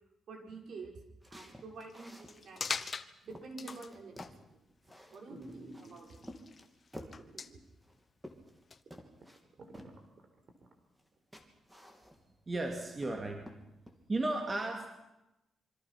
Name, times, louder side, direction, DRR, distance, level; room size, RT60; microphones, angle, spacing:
voice 1, 0.3-1.0 1.3-2.7 3.2-4.1 4.5-4.6 5.1-6.2, right 3 dB, 60° right, 1 dB, 6.0 m, -48 dB
sound 1, 1.2-2.4 2.9-3.0 3.3-4.4 4.8-5.8 6.2-7.2 7.8-8.6 8.9-9.4 9.7-9.9 11.0-11.1 11.3-12.4 12.8-13.2 13.4-14.0, equal, 5° right, 2.9 m, -51 dB
sound 2, 1.8-3.1 3.6-3.9 4.2-4.3 4.9-5.0 5.7-6.6 6.9-7.5 8.7-8.8, left 5 dB, 35° left, 1.2 m, -41 dB
sound 3, 4.1-4.4 4.9-5.0 5.3-6.3 6.9-7.6 7.9-8.0 8.5-8.6 8.9-10.7 11.2-11.3, right 2 dB, 45° right, 4.2 m, -52 dB
voice 2, 12.5-13.5 14.1-14.9, right 2 dB, 25° right, 3 dB, 2.5 m, -34 dB
27.5 x 24.5 x 6.0 m, 0.92 s
wide cardioid pair, 155°, 0 cm